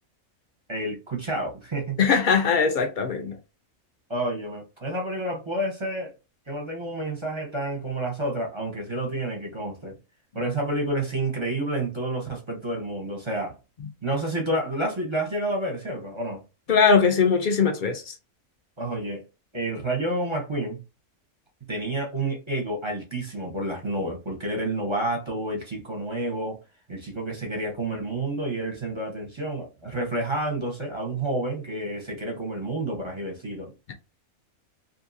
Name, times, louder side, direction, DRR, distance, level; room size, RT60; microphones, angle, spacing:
voice 1, 0.7-2.0 4.1-6.1 6.5-10.0 10.3-13.6 14.0-16.4 18.8-19.2 19.5-20.8 21.7-26.6 26.9-33.7, right 1 dB, 30° right, 0.6 m, -29 dB
voice 2, 2.0-3.4 16.7-18.1, left 5 dB, 70° left, 0.4 m, -21 dB
2.7 x 2.6 x 2.6 m
omnidirectional pair, 1.5 m